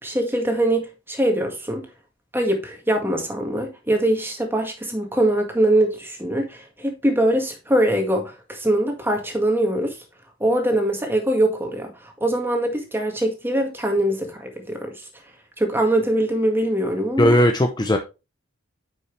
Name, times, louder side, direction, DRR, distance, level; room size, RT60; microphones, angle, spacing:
voice 1, 0.0-1.8 2.3-10.0 10.4-15.0 15.6-17.4, right 1 dB, 10° right, 1.8 m, -22 dB
voice 2, 17.2-18.0, left 1 dB, 20° left, 0.7 m, -17 dB
9.2 x 5.6 x 3.3 m
head